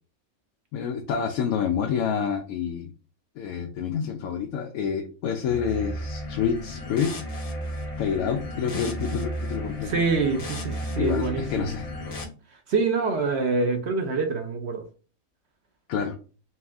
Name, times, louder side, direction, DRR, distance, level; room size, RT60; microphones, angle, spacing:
voice 1, 0.7-2.9 3.4-7.1 8.0-9.9 11.0-11.9 15.9-16.1, left 7 dB, 90° left, 1.0 m, -28 dB
sound 1, 5.4-12.2, equal, 40° left, 0.5 m, -34 dB
voice 2, 9.8-11.7 12.7-14.8, right 4 dB, 60° right, 0.9 m, -25 dB
4.3 x 2.4 x 3.5 m
omnidirectional pair, 1.5 m